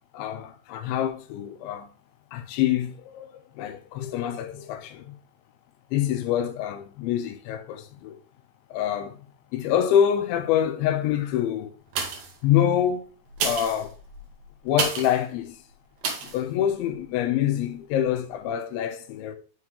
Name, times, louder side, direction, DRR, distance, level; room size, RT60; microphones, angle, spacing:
voice 1, 0.1-1.9 2.3-3.3 3.5-5.2 5.9-8.2 8.7-9.3 9.5-11.7 12.4-13.1 13.4-13.9 14.6-15.6 16.2-19.4, left 10 dB, 85° left, 3.2 m, -26 dB
sound 1, 11.9-12.4 13.3-15.2 16.0-16.4 16.9-17.0, right 5 dB, 75° right, 1.7 m, -30 dB
6.8 x 5.7 x 3.1 m
omnidirectional pair, 5.3 m